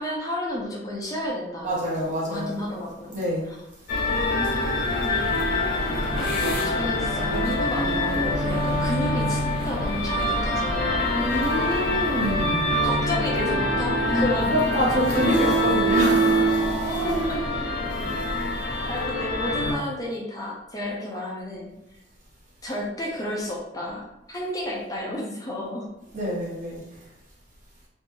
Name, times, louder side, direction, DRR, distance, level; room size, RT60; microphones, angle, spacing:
voice 1, 0.0-3.2 4.1-5.5 6.2-6.4 6.6-11.1 12.8-14.6 14.8-14.9 15.4-15.5 17.0-17.5 18.8-21.7 22.6-25.9, left 1 dB, 20° left, -3 dB, 0.6 m, -32 dB
voice 2, 1.6-2.6 3.1-3.5 11.2-12.7 14.5-16.6 26.1-26.8, equal, 45° right, -6 dB, 1.3 m, -26 dB
sound 1, 3.9-19.7, equal, 60° left, 0.8 m, -24 dB
Growling, 13.3-18.6, right 1 dB, 15° right, 1.4 m, -36 dB
3.0 x 2.5 x 3.5 m, 0.90 s
head